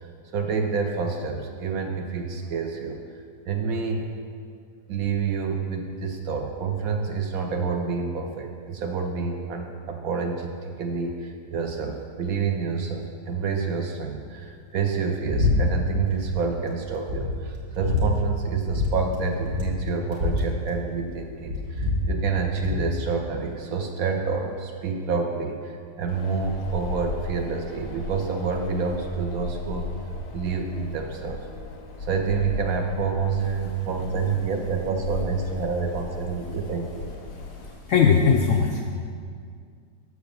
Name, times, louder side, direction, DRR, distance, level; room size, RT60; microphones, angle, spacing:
voice 1, 0.3-3.0 3.5-4.1 4.9-29.9 30.3-31.4 32.0-37.1, right 5 dB, 65° right, 4 dB, 1.0 m, -28 dB
sound 1, 15.3-15.5 15.8-16.4 16.7-16.8 17.1-18.0 18.7-18.9 19.1-19.2 19.4-21.1 21.4-22.9, left 3 dB, 50° right, 1.8 m, -26 dB
Wind, 26.1-37.7, left 3 dB, 90° left, 1.4 m, -37 dB
voice 2, 37.3-38.8, left 6 dB, 70° left, 1 dB, 0.7 m, -21 dB
6.6 x 4.9 x 6.7 m, 2.2 s
omnidirectional pair, 1.8 m